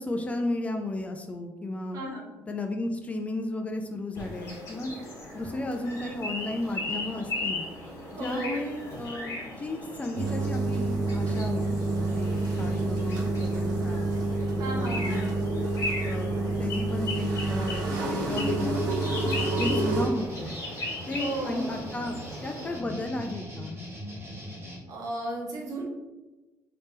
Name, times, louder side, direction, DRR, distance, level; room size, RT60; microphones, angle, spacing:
voice 1, 0.0-2.0 2.5-4.9 5.3-7.6 8.2-14.1 14.5-15.3 16.0-19.0 19.5-20.5 21.1-23.8, left 2 dB, 20° left, 4 dB, 0.3 m, -34 dB
voice 2, 1.9-2.2 8.1-8.5 14.6-15.2 21.2-21.8 24.9-25.8, right 2 dB, 60° right, -2 dB, 1.1 m, -34 dB
sound 1, 4.1-22.8, left 2 dB, 45° left, 1.5 m, -38 dB
sound 2, 10.2-20.1, right 2 dB, 75° right, 0.7 m, -28 dB
sound 3, 17.9-24.8, equal, 35° right, 1.3 m, -42 dB
3.3 x 2.9 x 3.2 m, 1.1 s
cardioid pair, 130°, 7 cm